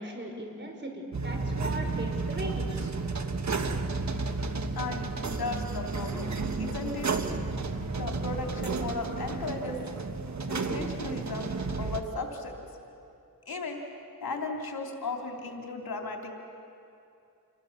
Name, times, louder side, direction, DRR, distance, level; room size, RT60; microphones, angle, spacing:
voice 1, 0.0-2.9, right 1 dB, 30° right, 2 dB, 5.7 m, -38 dB
sound 1, 1.1-12.0, right 3 dB, 50° right, 1.5 m, -32 dB
voice 2, 4.7-7.1 7.9-9.8 10.4-11.5 11.8-12.6 13.4-13.8 14.2-16.3, left 3 dB, 80° left, 1 dB, 3.2 m, -36 dB
28.5 x 22.5 x 7.3 m, 2.6 s
cardioid pair, 70°, 36 cm